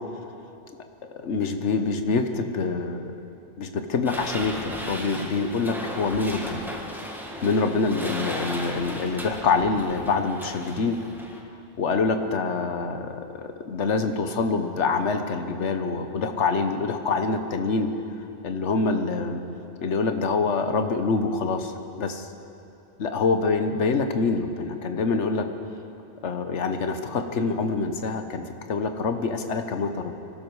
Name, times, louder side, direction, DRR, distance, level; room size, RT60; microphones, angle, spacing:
voice 1, 1.1-3.1 3.6-6.6 7.4-11.0 11.8-17.9 18.4-19.4 19.8-21.7 22.0-22.3 23.0-25.5 26.2-30.1, left 4 dB, 90° left, 7 dB, 1.3 m, -25 dB
sound 1, 4.1-11.4, equal, ahead, 1.4 m, -36 dB
24.0 x 12.0 x 4.8 m, 2.8 s
omnidirectional pair, 1.2 m